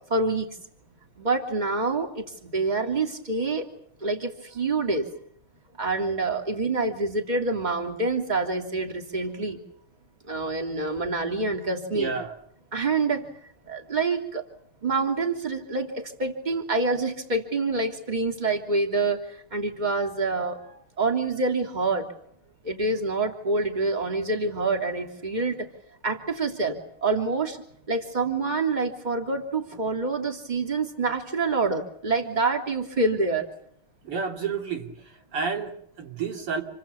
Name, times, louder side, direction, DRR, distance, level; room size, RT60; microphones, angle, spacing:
voice 1, 0.1-0.5 1.2-3.6 4.0-5.1 5.8-9.6 10.3-12.1 12.7-13.3 13.7-14.4 14.8-22.1 22.6-25.7 26.0-27.6 27.9-33.4, right 3 dB, 20° right, 4 dB, 3.2 m, -27 dB
voice 2, 11.9-12.3 34.0-34.9 35.3-36.6, right 5 dB, 85° right, 4 dB, 3.9 m, -30 dB
28.0 x 24.0 x 7.1 m, 0.68 s
omnidirectional pair, 2.4 m